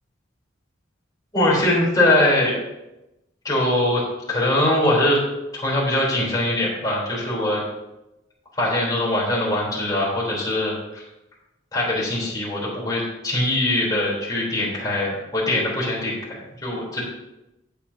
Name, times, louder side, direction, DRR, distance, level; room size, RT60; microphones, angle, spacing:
voice 1, 1.3-2.5 3.4-5.2 5.5-7.6 8.6-11.0 11.7-17.0, left 1 dB, 20° left, -5 dB, 3.6 m, -22 dB
15.0 x 8.1 x 2.8 m, 0.93 s
head